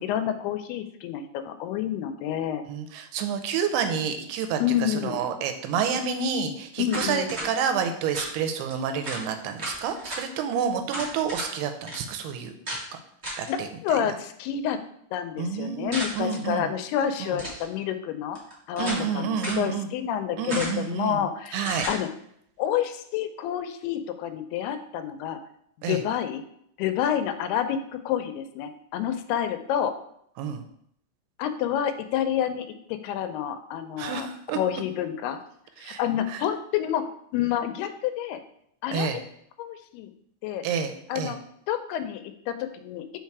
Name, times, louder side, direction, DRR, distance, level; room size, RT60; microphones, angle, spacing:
voice 1, 0.0-2.6 4.6-5.2 6.8-7.4 13.5-13.6 13.8-14.8 15.1-18.4 18.7-18.9 19.2-22.1 22.6-25.4 25.9-26.4 26.8-30.0 31.4-34.3 34.5-35.4 35.8-38.4 38.8-39.2 39.6-40.1 40.4-40.6 41.1-41.4 41.7-43.1, left 10 dB, 85° left, 9 dB, 2.6 m, -29 dB
voice 2, 2.7-12.5 13.4-14.0 15.4-16.7 17.2-17.4 18.8-19.9 20.4-21.9 25.8-26.0 30.4-30.6 34.0-34.6 35.8-36.0 36.3-36.4 38.9-39.2 40.6-41.3, right 6 dB, 85° right, 7 dB, 2.7 m, -29 dB
sound 1, 6.9-7.5 8.1-8.3 8.7-8.8 9.0-9.2 9.6-10.2 10.9-11.5 11.9-12.0 12.7-12.8 13.2-13.5 15.9-16.4 17.3-17.7 18.3-19.1 19.4-19.6 20.5-20.9 21.6-22.0, right 1 dB, 55° right, 0.7 m, -34 dB
5.6 x 4.6 x 4.7 m, 0.70 s
omnidirectional pair, 4.5 m